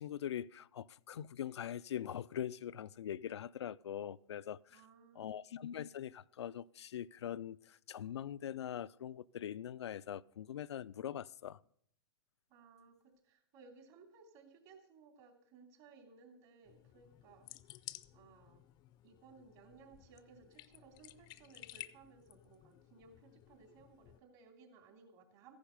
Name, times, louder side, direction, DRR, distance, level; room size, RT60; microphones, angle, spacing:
voice 1, 0.0-4.8 5.2-11.6, left 10 dB, 90° left, 0.4 m, -42 dB
voice 2, 4.7-5.4 12.5-12.9 13.2-17.5 18.1-18.6 19.0-25.5, right 4 dB, 45° right, 3.3 m, -61 dB
sound 1, 16.6-24.2, left 16 dB, 30° left, 0.5 m, -55 dB
14.5 x 10.0 x 5.3 m
hypercardioid pair, 130°, 14 cm